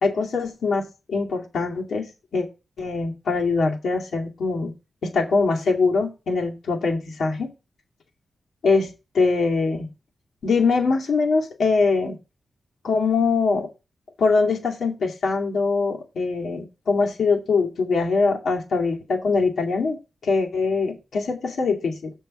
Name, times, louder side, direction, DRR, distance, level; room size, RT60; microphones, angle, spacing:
voice 1, 0.0-2.5 2.8-4.7 5.0-7.5 8.6-9.9 10.4-12.2 12.8-13.7 14.2-22.1, left 4 dB, 80° left, 2.3 m, -23 dB
7.4 x 5.4 x 5.4 m
wide cardioid pair, 95°, 0 cm